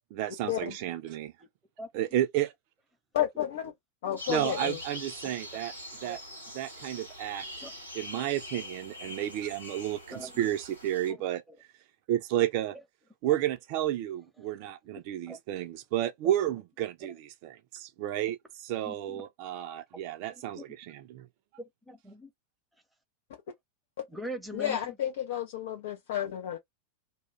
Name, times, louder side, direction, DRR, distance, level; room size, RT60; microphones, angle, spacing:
voice 1, 0.1-1.3 1.9-2.5 4.3-5.7 6.0-6.2 6.5-7.7 7.9-11.4 12.1-12.8 13.2-21.3, right 12 dB, 45° right, 0.4 m, -32 dB
voice 2, 3.1-3.7 4.0-4.8 24.5-26.6, left 11 dB, 55° left, 0.5 m, -31 dB
sound 1, 4.2-11.1, left 1 dB, 90° left, 1.2 m, -43 dB
voice 3, 18.8-19.2 20.6-20.7 21.6-22.3 24.1-24.9, equal, 5° right, 0.8 m, -41 dB
2.3 x 2.2 x 3.1 m
figure-of-eight pair, 90°, 0 cm